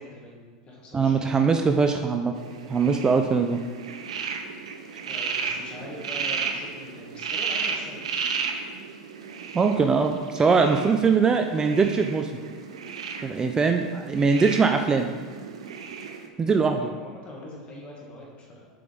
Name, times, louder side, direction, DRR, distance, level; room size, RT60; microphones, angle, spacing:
voice 1, 0.0-1.3 5.0-8.2 16.7-18.7, left 1 dB, 35° left, -2 dB, 1.9 m, -43 dB
voice 2, 0.9-2.3 2.7-3.6 9.5-12.3 13.2-15.1 16.4-16.8, right 5 dB, 20° right, 5 dB, 0.4 m, -21 dB
sound 1, 2.3-16.3, right 5 dB, 90° right, 0.6 m, -34 dB
6.7 x 5.2 x 3.5 m, 1.5 s
hypercardioid pair, 105°, 3 cm